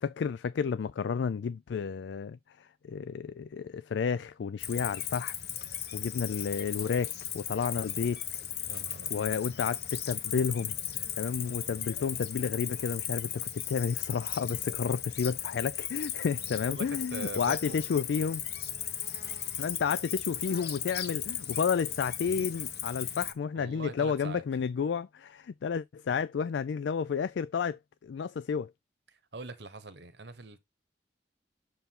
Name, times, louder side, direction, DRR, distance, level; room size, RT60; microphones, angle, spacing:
voice 1, 0.0-5.4 5.9-8.2 9.1-10.7 11.2-18.4 19.6-28.7, left 6 dB, 85° left, 0.4 m, -31 dB
Cricket, 4.6-23.3, left 10 dB, 60° left, 1.1 m, -36 dB
voice 2, 8.7-9.3 16.7-17.8 23.6-24.4 29.1-30.6, right 3 dB, 75° right, 1.2 m, -43 dB
6.8 x 4.5 x 3.7 m
head